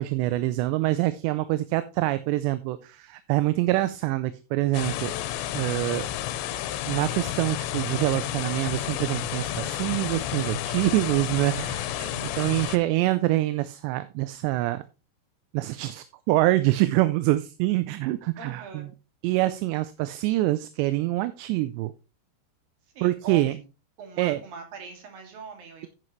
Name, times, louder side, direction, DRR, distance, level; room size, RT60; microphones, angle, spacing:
voice 1, 0.0-5.1 5.6-6.1 6.9-11.9 12.4-14.8 15.5-18.9 19.2-21.9 23.0-23.5 24.2-24.4, right 17 dB, 85° right, 2.8 m, -25 dB
sound 1, 4.7-12.8, left 12 dB, 85° left, 3.0 m, -31 dB
voice 2, 12.0-12.6 18.4-18.9 23.0-23.6 24.0-25.9, right 5 dB, 60° right, 3.9 m, -42 dB
9.9 x 9.7 x 3.1 m
omnidirectional pair, 5.0 m